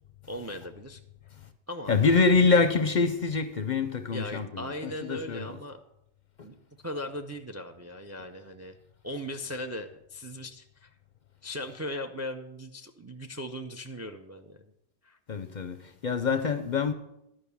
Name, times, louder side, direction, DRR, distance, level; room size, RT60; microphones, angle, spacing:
voice 1, 0.3-1.0 1.7-1.9 4.1-5.8 6.4-6.5 6.8-8.8 9.0-10.9 11.4-14.7 15.0-15.2, left 1 dB, 25° right, 0.4 m, -38 dB
voice 2, 1.9-5.6 6.4-6.5 15.3-15.8 16.0-16.9, left 4 dB, 50° left, 0.6 m, -25 dB
11.5 x 5.3 x 6.9 m
omnidirectional pair, 1.2 m